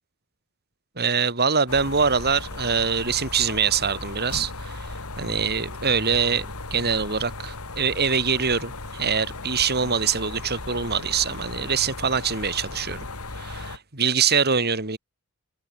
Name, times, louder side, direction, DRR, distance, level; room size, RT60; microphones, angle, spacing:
voice 1, 1.0-13.0 13.3-15.0, right 6 dB, 45° right, 4.0 m, -24 dB
sound 1, 1.7-13.8, left 3 dB, 80° left, 3.3 m, -36 dB
head